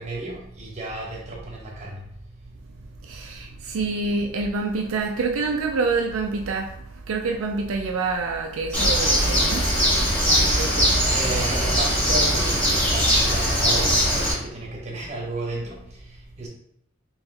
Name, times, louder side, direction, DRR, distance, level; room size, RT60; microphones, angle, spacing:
voice 1, 0.0-2.0 11.1-15.8 16.4-16.5, right 2 dB, 35° right, 1.0 m, -32 dB
voice 2, 3.0-11.1, right 3 dB, 80° right, 0.4 m, -27 dB
Bird, 8.7-14.3, equal, 5° left, 1.4 m, -21 dB
3.5 x 3.0 x 3.3 m
head